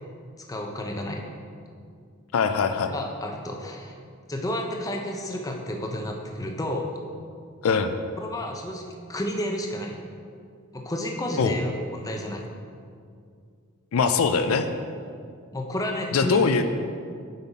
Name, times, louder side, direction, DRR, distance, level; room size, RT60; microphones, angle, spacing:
voice 1, 0.4-1.2 2.9-3.9 4.3-7.0 8.2-10.0 10.7-12.4 15.5-16.4, left 1 dB, 15° left, 1 dB, 0.6 m, -31 dB
voice 2, 2.3-2.9 7.6-7.9 11.4-11.6 13.9-14.7 16.1-16.6, left 5 dB, 80° left, 8 dB, 0.4 m, -22 dB
8.0 x 5.5 x 4.1 m, 2.2 s
head